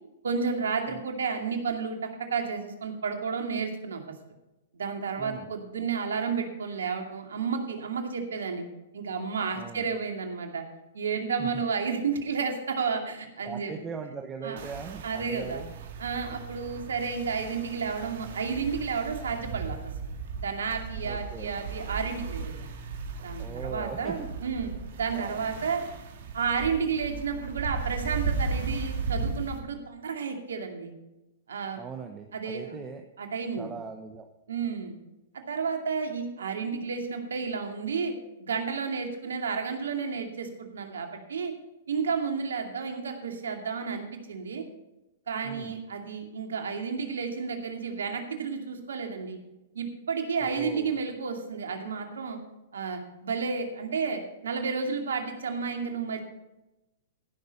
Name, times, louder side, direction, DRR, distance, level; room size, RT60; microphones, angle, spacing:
voice 1, 0.2-2.0 2.3-4.0 4.7-8.6 8.9-10.6 10.9-13.7 14.4-14.6 15.0-15.6 16.0-19.8 20.4-22.7 23.2-24.7 25.0-25.8 26.3-30.9 31.5-31.8 32.3-32.7 33.2-33.7 34.5-34.9 35.3-41.5 41.9-44.6 45.3-49.4 49.7-52.4 52.7-56.2, right 5 dB, 85° right, 4 dB, 2.4 m, -31 dB
voice 2, 5.2-5.5 9.5-9.9 11.4-11.5 13.4-15.7 21.0-21.6 23.4-24.3 25.1-25.4 31.8-33.0 33.6-34.3 45.4-45.8 50.4-50.9, right 5 dB, 20° right, 3 dB, 1.2 m, -40 dB
sound 1, 14.6-29.6, right 4 dB, 65° right, 2.5 m, -36 dB
15.5 x 6.6 x 5.4 m, 0.96 s
hypercardioid pair, 130°, 0 cm